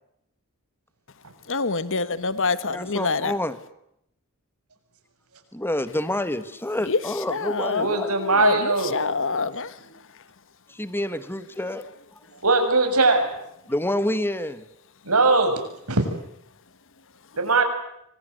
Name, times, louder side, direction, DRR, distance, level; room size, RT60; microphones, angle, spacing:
voice 1, 1.5-3.3 6.9-7.0 7.3-9.7, left 4 dB, 60° left, 14 dB, 1.6 m, -26 dB
voice 2, 2.7-3.6 5.5-8.1 10.7-11.9 13.7-14.6, left 1 dB, 10° left, 13 dB, 1.7 m, -28 dB
voice 3, 7.8-8.9 12.4-13.3 15.1-15.6 15.9-16.0 17.4-17.6, right 3 dB, 75° right, 6 dB, 7.0 m, -20 dB
26.0 x 25.5 x 8.0 m, 0.78 s
head